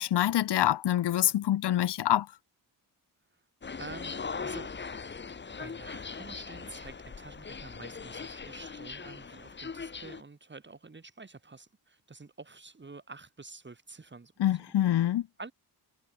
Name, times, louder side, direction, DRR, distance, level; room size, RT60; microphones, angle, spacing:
voice 1, 0.0-2.3 14.4-15.3, left 12 dB, 80° left, 1.0 m, -26 dB
sound 1, 3.6-10.2, left 5 dB, 25° left, 1.2 m, -40 dB
voice 2, 3.8-4.7 5.6-14.7 15.4-15.5, right 3 dB, 25° right, 6.5 m, -48 dB
wide cardioid pair, 125°, 40 cm